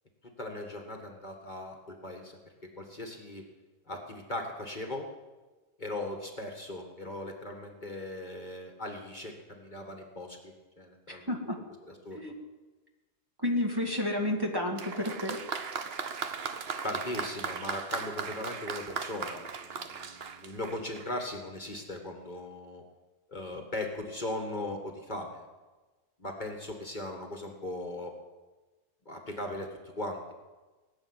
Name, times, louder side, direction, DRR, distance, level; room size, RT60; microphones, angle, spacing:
voice 1, 0.4-2.4 2.8-3.5 3.9-5.1 5.8-11.3 11.8-12.2 16.8-22.8 23.3-25.5 26.2-28.1 29.1-30.3, left 1 dB, 35° left, 2 dB, 1.9 m, -38 dB
voice 2, 11.1-11.6 12.1-12.3 13.4-15.4, left 1 dB, 15° right, -1 dB, 2.0 m, -31 dB
Applause, 14.8-21.2, right 6 dB, 50° right, 1.1 m, -37 dB
19.0 x 7.7 x 9.9 m, 1.2 s
omnidirectional pair, 1.4 m